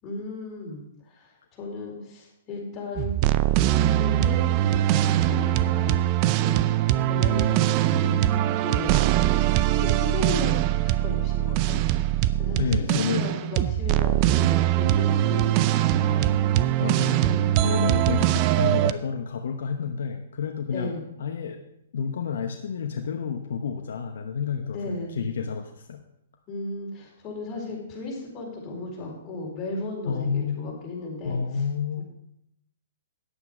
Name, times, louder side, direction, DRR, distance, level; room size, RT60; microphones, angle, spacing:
voice 1, 0.0-3.3 3.7-6.0 6.2-6.8 7.1-9.0 9.6-10.5 10.8-11.8 12.4-16.3 17.2-17.5 20.7-21.0 24.7-25.1 26.5-31.6 32.0-32.1, left 2 dB, 25° left, -3 dB, 4.4 m, -35 dB
sound 1, 3.0-18.9, right 13 dB, 35° right, 0.5 m, -22 dB
voice 2, 12.6-13.3 16.8-17.3 17.6-20.9 21.2-21.6 21.9-26.0 30.1-30.7 31.2-32.0, left 6 dB, 70° left, 5 dB, 0.9 m, -29 dB
9.9 x 8.2 x 5.0 m, 0.80 s
hypercardioid pair, 135°, 0 cm